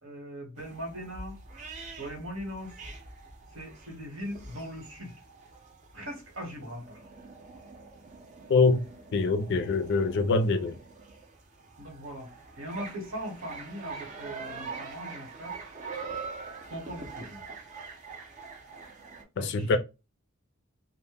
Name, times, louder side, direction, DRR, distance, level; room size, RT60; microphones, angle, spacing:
voice 1, 0.0-1.4 2.0-2.7 3.5-5.2 5.9-7.0 10.0-10.3 11.8-12.3 12.6-15.6 16.7-17.4 19.4-19.8, equal, 75° right, 1.1 m, -40 dB
sound 1, 0.6-19.2, right 4 dB, 35° right, 0.5 m, -44 dB
voice 2, 8.5-8.8 9.1-10.8 19.4-19.8, left 3 dB, 55° left, 0.4 m, -24 dB
2.1 x 2.1 x 3.3 m
head